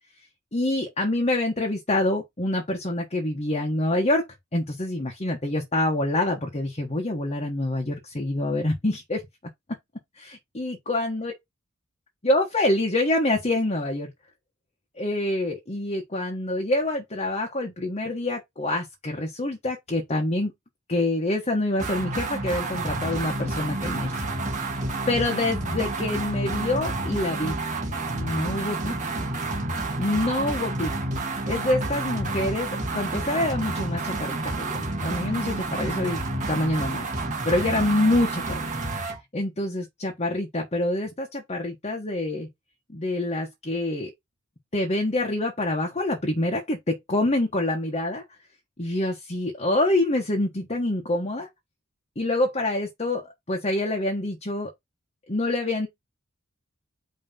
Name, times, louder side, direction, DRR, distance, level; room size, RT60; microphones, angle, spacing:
voice 1, 0.5-9.2 10.2-11.3 12.2-14.1 15.0-20.5 20.9-24.2 25.1-27.6 28.1-28.9 30.0-30.9 31.2-32.7 32.9-36.2 36.5-37.1 37.4-38.7 39.3-42.5 42.9-44.1 44.7-48.2 48.8-51.5 52.2-54.7 55.3-55.9, left 1 dB, 30° left, 1.3 m, -26 dB
sound 1, 21.8-39.2, right 2 dB, 40° right, 1.7 m, -29 dB
5.6 x 3.3 x 5.4 m
head